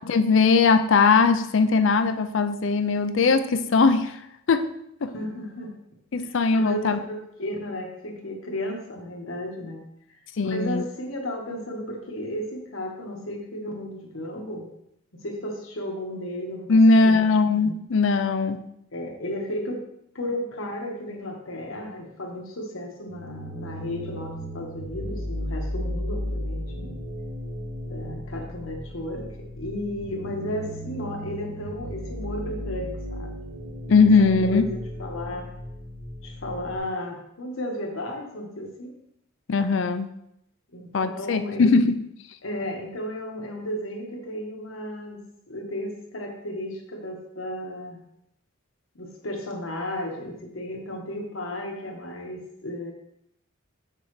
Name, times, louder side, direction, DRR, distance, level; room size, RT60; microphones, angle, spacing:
voice 1, 0.0-4.2 4.5-4.7 5.0-5.1 6.1-7.0 10.4-10.8 16.7-18.6 33.9-34.6 39.5-40.1 40.9-42.0, left 4 dB, 65° left, 10 dB, 0.5 m, -20 dB
voice 2, 5.1-5.7 6.2-9.8 10.4-14.7 15.2-16.8 17.0-17.3 18.9-19.8 20.1-27.0 27.9-33.3 34.2-35.5 36.2-38.9 40.7-41.6 42.4-45.2 45.5-48.0 48.9-52.9, left 1 dB, 80° left, 1 dB, 1.4 m, -34 dB
sound 1, 23.1-36.8, equal, 55° right, 2.4 m, -35 dB
7.0 x 6.7 x 3.2 m, 0.77 s
head